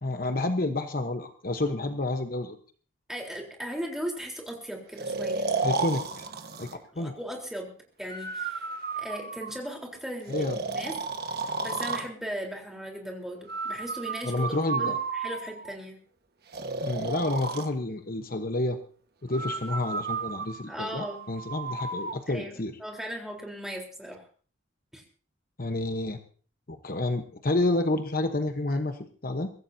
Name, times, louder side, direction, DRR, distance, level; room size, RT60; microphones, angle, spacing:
voice 1, 0.0-2.6 5.6-6.3 6.6-7.2 10.3-10.6 14.2-15.0 16.8-18.8 19.2-22.8 25.6-26.2 26.7-29.5, left 2 dB, 45° left, 7 dB, 1.1 m, -29 dB
voice 2, 3.1-5.5 6.7-7.7 8.0-8.6 8.9-10.9 11.3-16.0 20.7-21.2 22.3-24.2 24.9-25.0, equal, ahead, 0 dB, 3.9 m, -38 dB
Breathing, 5.0-6.8 8.1-9.8 10.3-12.1 13.5-15.7 16.5-17.7 19.3-22.2, right 4 dB, 50° right, 1.4 m, -33 dB
24.0 x 16.0 x 2.8 m, 0.41 s
head